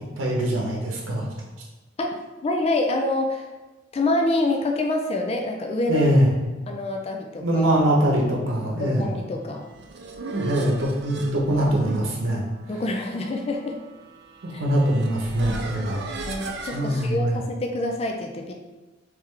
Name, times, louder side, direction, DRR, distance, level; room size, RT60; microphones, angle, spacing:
voice 1, 0.2-1.3 5.9-6.3 7.4-9.1 10.3-12.4 14.4-16.0 16.7-17.4, right 1 dB, 90° right, -2 dB, 0.8 m, -22 dB
voice 2, 2.4-3.5 3.9-6.1 6.7-7.7 8.8-9.7 12.7-13.8 14.5-14.6 16.3-18.5, left 2 dB, 30° left, 3 dB, 0.3 m, -26 dB
sound 1, 9.5-17.1, right 3 dB, 60° right, 0.5 m, -37 dB
3.6 x 3.2 x 3.2 m, 1.2 s
head